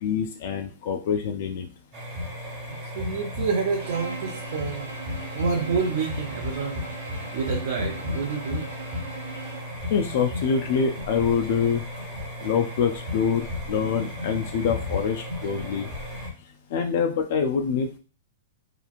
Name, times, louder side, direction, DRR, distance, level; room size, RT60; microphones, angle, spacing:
voice 1, 0.0-1.7 9.9-11.8 12.4-15.9 16.7-18.0, left 6 dB, 50° left, 4 dB, 0.3 m, -25 dB
sound 1, 1.9-16.3, left 2 dB, 25° right, 0.9 m, -34 dB
voice 2, 2.9-4.9 5.3-8.6, right 5 dB, 55° right, -1 dB, 0.5 m, -28 dB
Bowed string instrument, 3.8-9.8, right 4 dB, 85° right, 0.8 m, -41 dB
2.9 x 2.4 x 2.4 m, 0.36 s
supercardioid pair, 170°, 0 cm